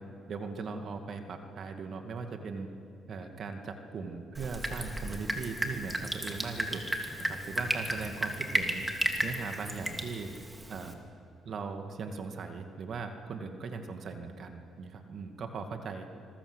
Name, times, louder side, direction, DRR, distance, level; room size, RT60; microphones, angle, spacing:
voice 1, 0.3-2.7 3.1-6.8 7.2-8.8 9.2-10.3 10.7-10.9 11.4-16.1, right 4 dB, 60° right, 5 dB, 2.2 m, -39 dB
Drip, 4.3-10.9, right 1 dB, 10° right, 3.2 m, -34 dB
26.5 x 21.5 x 8.2 m, 2.5 s
cardioid pair, 90°, 0 cm